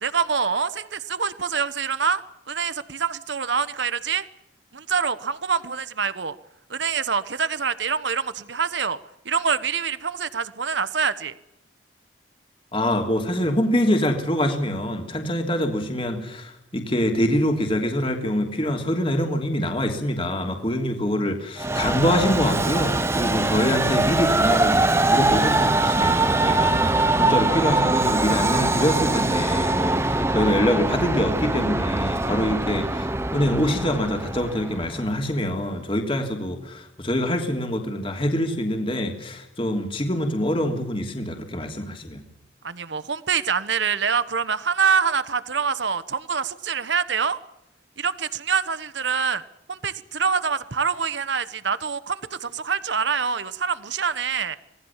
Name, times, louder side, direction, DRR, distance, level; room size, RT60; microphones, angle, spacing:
voice 1, 0.0-2.2 2.5-4.2 4.7-6.3 6.7-9.0 9.2-11.3 42.6-47.4 48.0-49.4 49.7-54.6, right 6 dB, 70° right, 15 dB, 1.1 m, -25 dB
voice 2, 12.7-42.2, equal, 30° left, 4 dB, 3.2 m, -25 dB
Train, 21.6-35.1, right 2 dB, 15° right, 0.8 m, -22 dB
26.5 x 18.5 x 7.4 m, 0.85 s
head